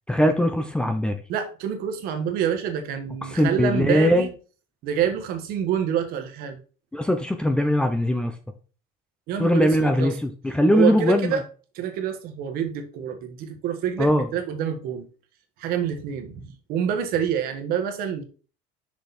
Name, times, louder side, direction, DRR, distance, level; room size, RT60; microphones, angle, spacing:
voice 1, 0.1-1.2 3.2-4.3 6.9-8.3 9.4-11.4 14.0-14.3, left 1 dB, 5° left, 6 dB, 0.6 m, -21 dB
voice 2, 1.3-4.3 4.8-6.6 9.3-10.1 10.7-11.4 11.7-15.1 15.6-16.4 16.7-18.2, right 8 dB, 55° right, 6 dB, 1.5 m, -27 dB
6.4 x 5.1 x 4.2 m, 0.37 s
cardioid pair, 160°, 18 cm